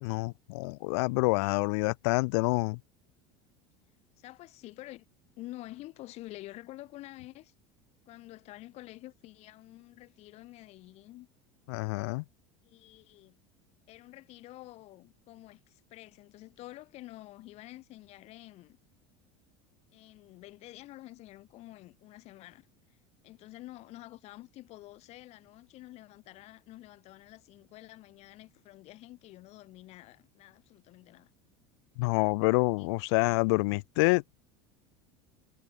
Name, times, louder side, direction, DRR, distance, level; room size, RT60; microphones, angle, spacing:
voice 1, 0.0-2.8 11.7-12.2 32.0-34.4, left 27 dB, 75° left, 1.0 m, -27 dB
voice 2, 4.2-5.0 5.3-7.5 8.1-11.3 12.6-13.3 13.9-18.8 19.9-23.0 23.2-31.3 32.8-32.9, left 17 dB, 50° left, 2.8 m, -49 dB
supercardioid pair, 120°, 14 cm